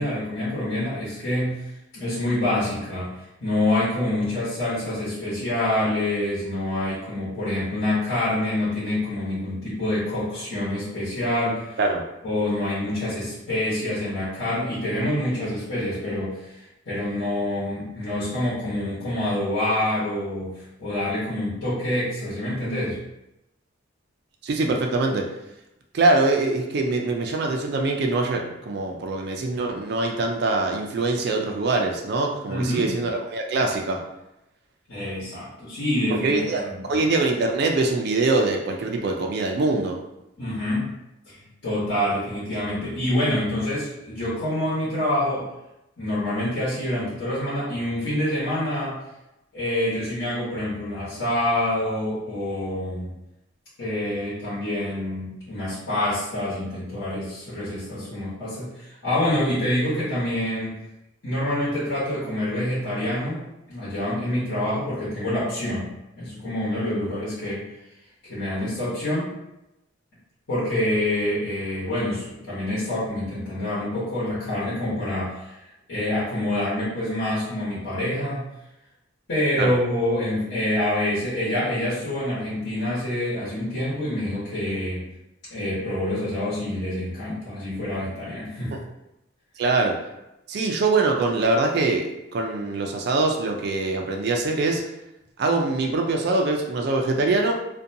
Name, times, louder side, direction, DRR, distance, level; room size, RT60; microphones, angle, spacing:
voice 1, 0.0-1.5 1.9-3.1 3.4-11.8 12.2-20.5 20.8-23.0 32.5-32.9 34.9-36.9 40.4-40.9 41.3-45.4 46.0-49.0 49.5-53.1 53.8-60.8 61.2-67.6 68.3-69.3 70.5-75.6 75.9-78.5 79.3-85.0 85.5-88.7, left 1 dB, 55° left, -12 dB, 1.1 m, -26 dB
voice 2, 24.4-25.3 25.9-34.0 36.2-40.0 79.6-79.7 89.6-90.0 90.5-94.8 95.4-97.6, right 3 dB, 50° right, 2 dB, 0.3 m, -23 dB
2.5 x 2.2 x 2.6 m, 0.90 s
head